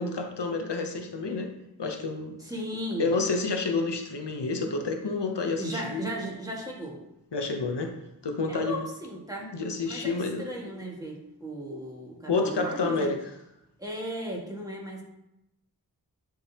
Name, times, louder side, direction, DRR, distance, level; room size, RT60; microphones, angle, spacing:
voice 1, 0.0-1.5 1.8-2.4 3.0-6.0 7.3-7.9 8.2-8.8 9.4-10.5 12.3-13.2, left 3 dB, 85° left, 4 dB, 0.8 m, -29 dB
voice 2, 2.4-3.1 5.6-7.0 8.5-9.5 9.8-13.1 13.8-15.0, right 1 dB, 10° right, -3 dB, 1.7 m, -36 dB
9.9 x 3.7 x 2.8 m, 0.87 s
wide cardioid pair, 40°, 40 cm